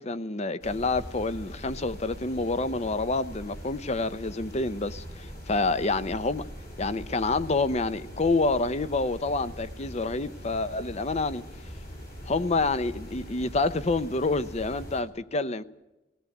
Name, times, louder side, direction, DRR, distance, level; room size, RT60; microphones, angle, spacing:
voice 1, 0.0-6.5 6.8-11.4 12.3-15.6, left 3 dB, 35° left, 0.7 m, -28 dB
sound 1, 0.6-15.0, equal, 55° left, 4.0 m, -42 dB
19.5 x 17.5 x 8.0 m
head